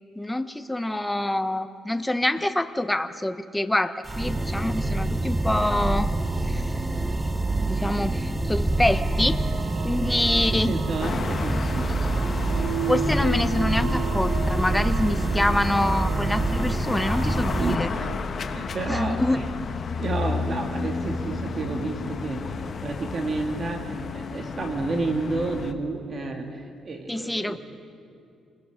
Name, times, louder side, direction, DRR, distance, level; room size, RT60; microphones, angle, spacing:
voice 1, 0.2-6.2 6.5-6.7 7.6-9.4 9.8-10.8 12.9-17.9 18.9-19.4 27.1-27.6, left 1 dB, 10° left, 11 dB, 0.9 m, -26 dB
sound 1, 4.0-17.8, right 2 dB, 15° right, 0.8 m, -26 dB
sound 2, 8.7-18.2, right 5 dB, 85° right, 1.2 m, -35 dB
voice 2, 10.5-12.3 17.6-18.1 18.4-19.5 20.0-27.6, right 3 dB, 45° right, 3 dB, 2.7 m, -31 dB
sound 3, 11.0-25.7, left 5 dB, 50° left, 1.2 m, -33 dB
28.5 x 20.5 x 5.1 m, 2.4 s
cardioid pair, 90°, 0 cm